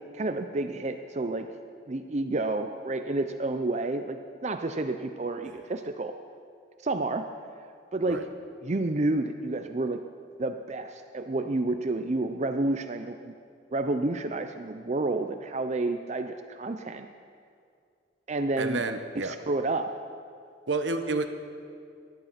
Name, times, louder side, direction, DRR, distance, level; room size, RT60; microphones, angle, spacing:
voice 1, 0.1-1.5 1.9-6.1 6.8-7.2 7.9-8.2 8.6-10.0 10.4-13.3 13.7-17.1 18.3-18.8 19.1-19.9, right 2 dB, 40° right, 7 dB, 0.5 m, -30 dB
voice 2, 18.6-19.3 20.7-21.3, right 3 dB, 75° right, 7 dB, 1.1 m, -29 dB
18.5 x 12.0 x 5.8 m, 2.3 s
head